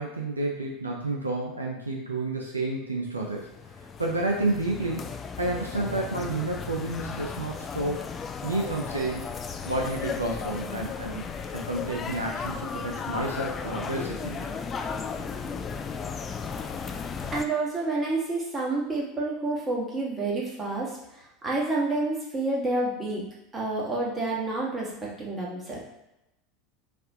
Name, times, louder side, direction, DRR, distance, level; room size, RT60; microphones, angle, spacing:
voice 1, 0.0-3.5 4.0-5.0 5.4-8.1 8.4-9.3 9.6-11.3 11.5-14.5, right 2 dB, 90° right, 0 dB, 0.4 m, -30 dB
sound 1, 3.2-17.4, left 5 dB, 30° left, 0.3 m, -35 dB
voice 2, 17.3-23.2 23.5-25.8, right 2 dB, 25° right, -3 dB, 1.2 m, -29 dB
4.2 x 2.5 x 2.7 m, 0.91 s
figure-of-eight pair, 80°, 0 cm